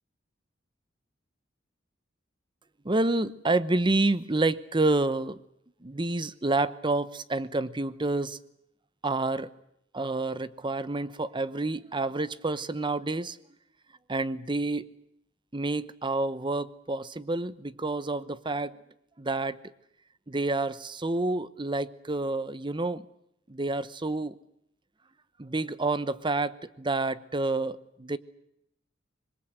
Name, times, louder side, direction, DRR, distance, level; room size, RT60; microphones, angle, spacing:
voice 1, 2.8-5.4 5.8-8.4 9.0-9.5 9.9-13.4 14.1-14.9 15.5-18.8 19.2-19.6 20.3-23.0 23.5-24.4 25.4-28.2, right 2 dB, 25° right, 15 dB, 0.9 m, -28 dB
25.5 x 22.0 x 8.1 m, 0.75 s
head